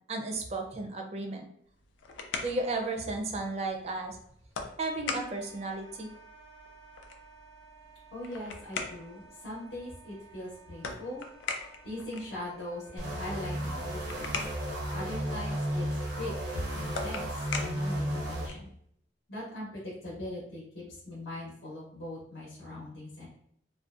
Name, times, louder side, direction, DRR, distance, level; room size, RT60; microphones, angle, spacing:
voice 1, 0.1-1.4 2.4-4.2 4.8-6.1, right 2 dB, 35° right, 3 dB, 0.4 m, -34 dB
sound 1, 1.7-18.8, left 4 dB, 90° left, 0.4 m, -43 dB
Wind instrument woodwind instrument, 5.0-18.1, right 3 dB, 25° left, 0.7 m, -56 dB
voice 2, 8.1-11.3 11.8-14.3 14.9-18.7 19.3-23.3, left 1 dB, 70° left, -5 dB, 0.8 m, -40 dB
sound 2, 13.0-18.5, equal, 85° right, 0.6 m, -33 dB
2.5 x 2.1 x 2.4 m, 0.68 s
head